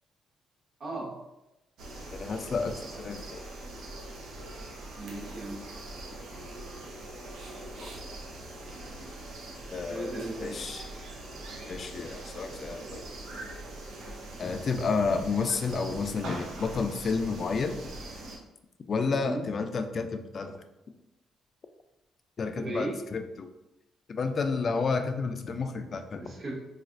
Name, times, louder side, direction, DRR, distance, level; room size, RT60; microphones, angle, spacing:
voice 1, 0.8-1.2 5.0-5.6 9.9-10.6 19.0-19.4 22.6-23.0 26.2-26.6, right 2 dB, 55° right, -3 dB, 1.0 m, -36 dB
sound 1, 1.8-18.4, right 2 dB, 75° right, 0.7 m, -42 dB
voice 2, 2.1-3.4 7.8-7.9 9.7-10.1 10.4-10.9 11.7-13.0 14.4-17.8 18.9-20.6 22.4-23.5 24.1-26.4, left 4 dB, 45° left, 8 dB, 0.3 m, -31 dB
4.1 x 2.4 x 2.5 m, 0.93 s
cardioid pair, 90°, 0 cm